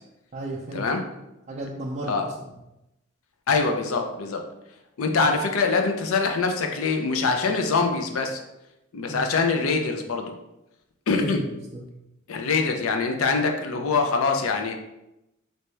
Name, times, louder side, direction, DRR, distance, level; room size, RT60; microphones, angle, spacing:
voice 1, 0.3-0.8 1.5-2.5 9.1-9.3 11.1-11.9, right 1 dB, 35° right, -5 dB, 0.4 m, -34 dB
voice 2, 3.5-4.4 5.0-8.4 8.9-10.3 11.1-11.4 12.3-14.7, left 4 dB, 80° left, 4 dB, 0.5 m, -24 dB
3.2 x 2.7 x 3.2 m, 0.91 s
head